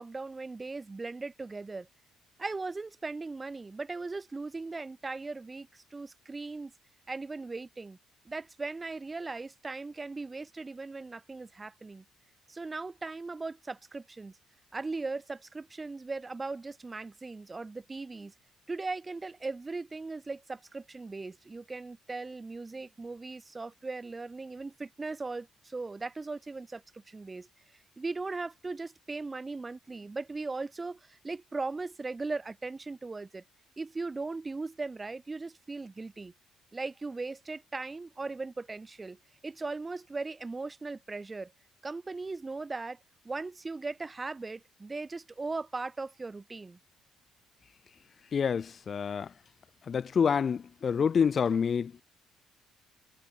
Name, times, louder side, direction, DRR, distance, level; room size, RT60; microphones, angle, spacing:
voice 1, 0.0-1.9 2.4-6.7 7.1-8.0 8.2-12.0 12.5-14.3 14.7-18.3 18.7-27.5 28.0-33.4 33.8-36.3 36.7-41.5 41.8-43.0 43.2-46.8, right 3 dB, 25° right, 1.0 m, -38 dB
voice 2, 48.3-49.3 49.9-52.0, left 6 dB, 45° left, 0.4 m, -27 dB
figure-of-eight pair, 45°, 0 cm